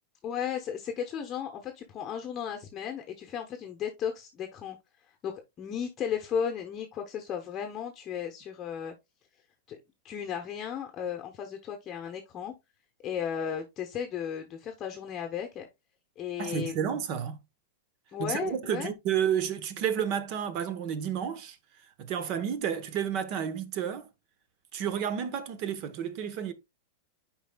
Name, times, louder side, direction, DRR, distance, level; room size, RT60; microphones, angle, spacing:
voice 1, 0.2-4.8 5.2-8.9 9.7-9.8 10.0-12.5 13.0-15.7 16.2-16.7 18.1-18.9, left 8 dB, 25° left, 0.9 m, -35 dB
voice 2, 16.4-17.4 18.2-21.6 22.0-24.1 24.7-26.5, right 8 dB, 45° right, 1.0 m, -31 dB
10.0 x 4.7 x 2.3 m
supercardioid pair, 145°, 0 cm